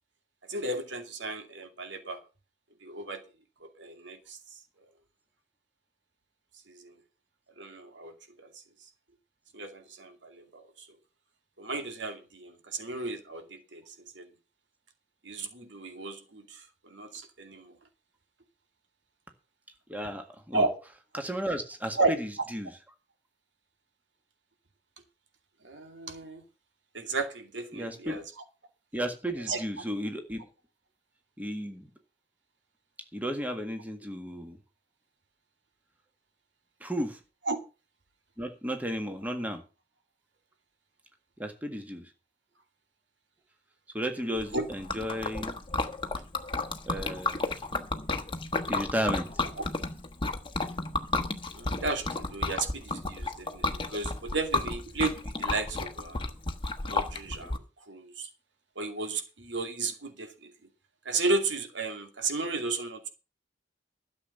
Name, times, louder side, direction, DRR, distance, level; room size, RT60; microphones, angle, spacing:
voice 1, 0.5-2.2 2.8-3.2 3.6-4.4 6.7-6.9 7.6-8.1 8.4-8.6 9.5-10.9 11.6-14.3 15.2-17.8 20.5-20.8 22.0-22.1 25.6-26.4 26.9-28.2 29.5-29.6 37.5-37.6 44.3-44.6 49.6-49.7 51.5-56.3 56.8-57.6 57.9-58.3 58.8-60.5 61.0-63.1, right 3 dB, 85° right, 2.5 m, -34 dB
voice 2, 19.9-20.6 21.1-22.7 27.7-28.2 28.9-30.4 31.4-31.9 33.1-34.6 36.8-37.2 38.4-39.6 41.4-42.0 43.9-45.6 46.9-47.5 48.7-49.3, equal, 10° right, 1.7 m, -33 dB
Liquid, 44.4-57.6, left 3 dB, 25° left, 1.1 m, -32 dB
13.0 x 7.2 x 6.6 m
head